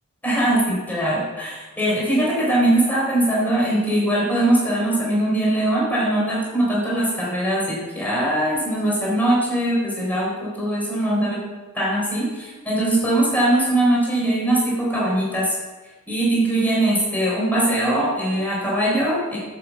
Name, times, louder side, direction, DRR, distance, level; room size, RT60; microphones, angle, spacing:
voice 1, 0.2-11.4 11.7-15.6 16.1-19.4, right 1 dB, 10° left, -5 dB, 4.2 m, -21 dB
11.5 x 7.0 x 7.1 m, 1.3 s
head